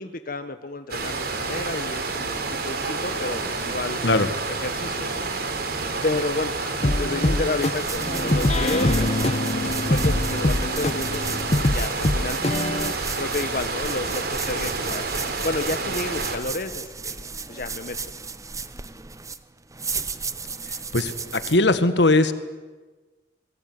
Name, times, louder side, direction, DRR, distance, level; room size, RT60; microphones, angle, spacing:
voice 1, 0.0-4.0 4.5-5.3 6.0-9.4 9.9-12.7 13.2-17.2 17.5-18.0, left 2 dB, 55° left, 8 dB, 1.5 m, -31 dB
sound 1, 0.9-16.4, right 3 dB, 60° right, 4.4 m, -29 dB
sound 2, 6.8-12.9, left 2 dB, 40° left, 0.9 m, -24 dB
sound 3, 7.6-21.6, right 4 dB, 20° right, 1.1 m, -35 dB
voice 2, 20.9-22.3, left 2 dB, 75° left, 11 dB, 1.8 m, -19 dB
28.5 x 21.0 x 9.7 m, 1.3 s
head